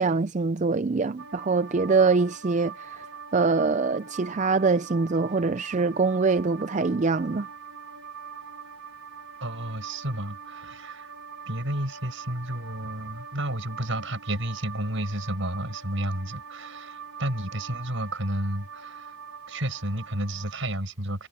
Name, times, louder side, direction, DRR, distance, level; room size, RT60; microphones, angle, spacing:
voice 1, 0.0-3.0 3.3-7.5, right 4 dB, 35° right, 0.4 m, -24 dB
sound 1, 1.2-20.7, right 6 dB, 80° right, 3.7 m, -43 dB
voice 2, 9.4-11.1 11.5-19.2 19.5-21.3, right 1 dB, 60° right, 7.4 m, -31 dB
head